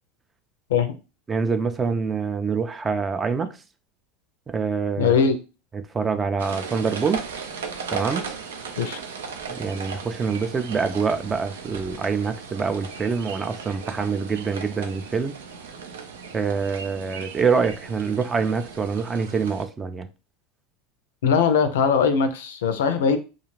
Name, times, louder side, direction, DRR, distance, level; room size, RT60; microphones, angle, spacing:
voice 1, 1.3-3.6 4.5-5.2 5.7-7.2 7.9-8.3 9.5-15.4 16.3-20.1, right 5 dB, 25° right, 0.4 m, -25 dB
voice 2, 5.0-5.4 8.8-9.0 21.2-23.2, left 6 dB, 80° left, 0.4 m, -20 dB
sound 1, 6.4-19.6, right 5 dB, 85° right, 0.4 m, -37 dB
2.4 x 2.3 x 3.1 m
hypercardioid pair, 90°, 0 cm